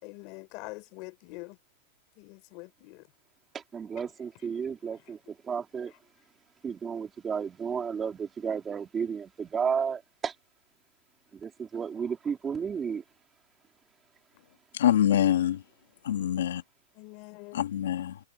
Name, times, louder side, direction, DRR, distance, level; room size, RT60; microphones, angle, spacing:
voice 1, 0.0-1.6 2.2-3.1 16.9-17.6, left 25 dB, 30° left, 4.4 m, -44 dB
voice 2, 3.5-5.9 6.6-10.3 11.3-13.0, right 6 dB, 10° right, 3.5 m, -33 dB
voice 3, 14.7-15.6 16.0-16.6 17.5-18.2, left 11 dB, 70° left, 2.0 m, -25 dB
hypercardioid pair, 170°, 0 cm